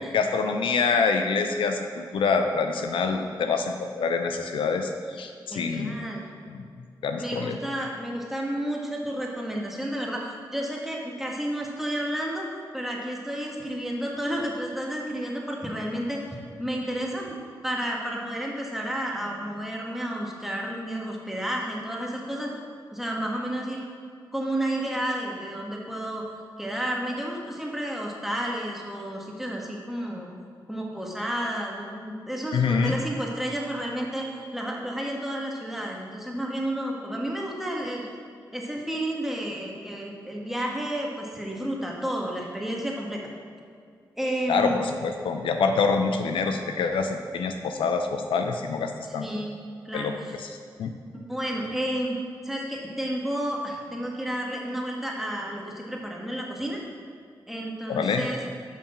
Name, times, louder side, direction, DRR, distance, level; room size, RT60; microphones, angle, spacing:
voice 1, 0.1-5.9 6.5-6.7 7.0-7.6 32.5-32.9 44.5-49.3 49.9-50.5 50.8-50.9 57.9-58.3, left 5 dB, 85° left, 5 dB, 0.6 m, -26 dB
voice 2, 5.5-6.2 7.2-10.3 10.5-12.5 12.7-16.2 16.6-17.3 17.6-22.5 22.9-23.8 24.3-26.2 26.6-30.3 30.7-38.1 38.5-43.2 44.2-44.8 49.2-49.6 49.8-50.3 51.3-52.2 52.4-56.8 57.5-58.4, right 1 dB, 5° right, -2 dB, 1.8 m, -31 dB
7.0 x 5.8 x 5.9 m, 2.2 s
cardioid pair, 50°, 9 cm